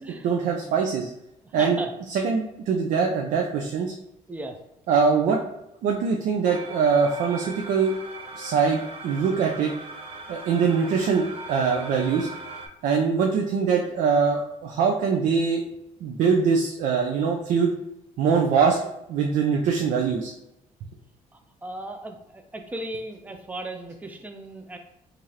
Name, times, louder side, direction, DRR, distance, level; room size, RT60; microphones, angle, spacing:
voice 1, 0.2-1.1 1.5-1.8 2.1-3.9 4.9-5.4 5.8-7.9 8.4-9.7 10.3-12.3 12.8-15.6 16.0-17.7 18.2-18.8 19.1-20.3, right 5 dB, 75° right, 2 dB, 0.5 m, -23 dB
voice 2, 1.6-1.9 4.3-4.6 21.6-24.8, right 1 dB, 10° right, 5 dB, 0.4 m, -36 dB
sound 1, 6.4-12.7, right 2 dB, 45° right, 0.7 m, -39 dB
4.6 x 2.5 x 2.8 m, 0.87 s
cardioid pair, 130°, 13 cm